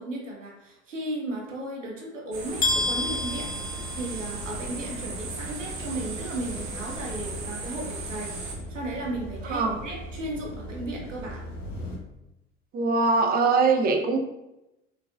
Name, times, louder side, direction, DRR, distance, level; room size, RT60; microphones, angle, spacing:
voice 1, 0.0-3.5 3.9-8.3 8.7-11.4, right 1 dB, 90° right, -1 dB, 0.7 m, -35 dB
sound 1, 2.3-8.6, right 3 dB, 55° right, 0.8 m, -37 dB
sound 2, 2.5-12.0, equal, 80° left, 0.7 m, -39 dB
sound 3, 2.6-4.6, left 2 dB, 25° left, 0.5 m, -29 dB
voice 2, 12.7-14.2, right 4 dB, 25° right, 3 dB, 0.5 m, -22 dB
3.7 x 2.4 x 2.2 m, 0.93 s
figure-of-eight pair, 65°, 37 cm